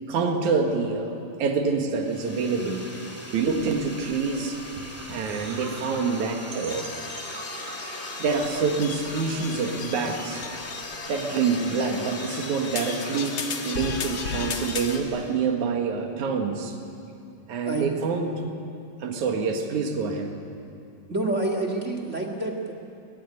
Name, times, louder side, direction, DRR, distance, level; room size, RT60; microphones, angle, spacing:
voice 1, 0.1-1.1 1.4-2.9 3.3-4.6 5.1-6.9 8.2-10.4 11.1-16.8 17.5-18.4 19.0-20.4, right 5 dB, 70° right, 3 dB, 3.2 m, -26 dB
sound 1, 2.0-15.4, left 1 dB, 5° left, 1.5 m, -41 dB
sound 2, 3.4-9.6 9.9-11.0, right 2 dB, 85° right, 4.4 m, -43 dB
sound 3, 6.7-15.0, left 5 dB, 50° left, 1.8 m, -35 dB
voice 2, 21.1-22.7, right 2 dB, 30° right, 3 dB, 1.7 m, -27 dB
22.0 x 20.0 x 9.8 m, 2.5 s
omnidirectional pair, 3.7 m